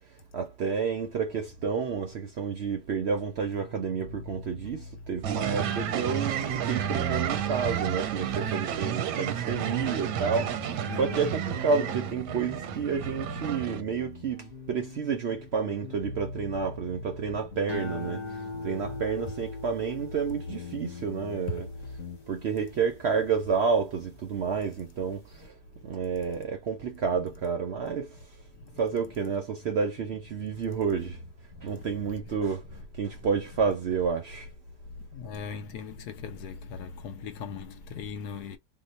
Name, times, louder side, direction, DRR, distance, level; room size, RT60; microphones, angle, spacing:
voice 1, 0.3-10.7 11.0-18.2 18.6-21.7 22.3-25.2 25.8-28.1 28.8-31.2 31.6-32.6 33.0-34.5, right 5 dB, 65° right, 0.6 m, -30 dB
sound 1, 3.5-22.2, left 4 dB, 50° left, 1.0 m, -43 dB
sound 2, 5.2-13.8, right 10 dB, 90° right, 1.2 m, -31 dB
voice 2, 10.8-11.3 21.5-21.6 25.4-25.5 25.8-26.0 28.5-28.8 30.4-30.5 31.5-31.9 34.9-38.6, left 5 dB, 80° left, 1.1 m, -39 dB
sound 3, 17.7-24.2 24.7-25.2, left 3 dB, 25° left, 0.7 m, -41 dB
2.9 x 2.0 x 3.9 m
omnidirectional pair, 1.7 m